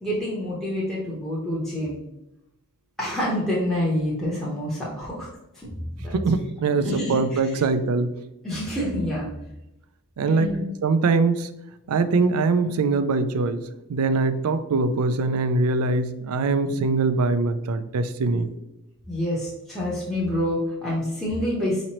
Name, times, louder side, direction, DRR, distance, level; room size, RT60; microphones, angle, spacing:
voice 1, 0.0-2.0 3.0-5.3 5.5-5.7 6.0-6.2 6.7-7.5 8.4-9.3 10.2-10.7 19.1-21.8, left 1 dB, ahead, -6 dB, 0.8 m, -27 dB
voice 2, 6.1-8.1 10.2-10.5 10.8-11.5 11.9-18.5, right 3 dB, 80° right, 11 dB, 0.4 m, -22 dB
5.0 x 3.0 x 2.9 m, 0.89 s
head